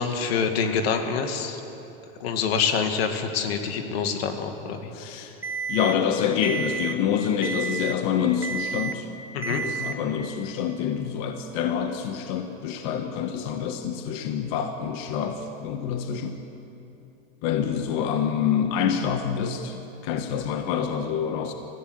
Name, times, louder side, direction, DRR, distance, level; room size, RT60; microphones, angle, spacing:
voice 1, 0.0-1.6 2.2-4.9 9.3-9.6, left 6 dB, 85° left, 6 dB, 2.0 m, -26 dB
voice 2, 4.9-5.3 5.7-9.1 9.4-16.4 17.4-19.8 20.0-21.5, left 8 dB, 50° left, 6 dB, 1.3 m, -27 dB
Alarm, 5.4-5.9 6.4-6.9 7.4-7.9 8.4-8.9 9.4-9.9, right 6 dB, 10° right, 1.0 m, -30 dB
21.5 x 15.0 x 8.0 m, 3.0 s
supercardioid pair, 150°, 30 cm